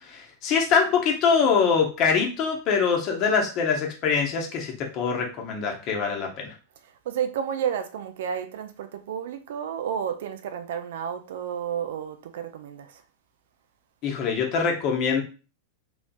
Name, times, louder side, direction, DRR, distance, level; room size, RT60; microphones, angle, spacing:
voice 1, 0.0-6.5 14.0-15.2, left 6 dB, 40° left, 1.0 m, -24 dB
voice 2, 6.8-13.0, right 8 dB, 55° right, 0.4 m, -31 dB
3.9 x 3.1 x 2.3 m
figure-of-eight pair, 90°, 0 cm